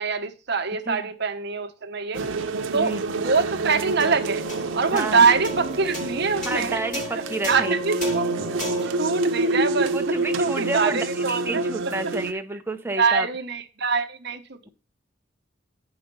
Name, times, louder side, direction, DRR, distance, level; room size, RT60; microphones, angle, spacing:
voice 1, 0.0-2.2 2.7-4.4 4.7-9.9 10.4-11.6 13.0-14.6, right 5 dB, 60° right, 1.0 m, -24 dB
sound 1, 2.1-12.3, right 2 dB, 90° right, 0.7 m, -28 dB
voice 2, 2.7-3.0 4.9-5.2 6.5-7.8 9.9-13.3, right 2 dB, 10° right, 0.7 m, -30 dB
sound 2, 4.0-10.6, left 1 dB, 45° left, 5.2 m, -36 dB
sound 3, 5.0-7.5, right 4 dB, 85° left, 1.5 m, -48 dB
6.8 x 5.0 x 6.6 m
head